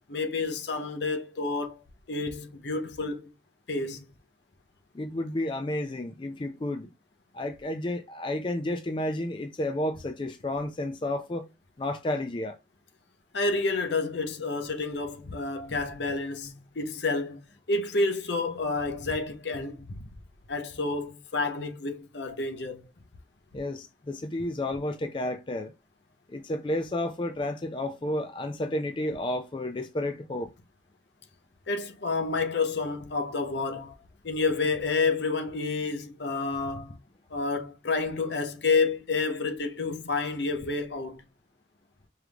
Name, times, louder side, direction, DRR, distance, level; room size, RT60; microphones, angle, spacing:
voice 1, 0.1-1.8 2.1-3.3 3.7-4.1 13.3-17.4 17.7-20.0 20.5-22.8 31.7-34.0 34.2-37.0 37.3-41.2, left 3 dB, 65° left, 0.8 m, -29 dB
voice 2, 4.9-6.9 7.3-11.5 11.8-12.5 23.5-25.7 26.3-30.5, left 1 dB, 25° left, 0.4 m, -31 dB
4.6 x 3.4 x 2.4 m
head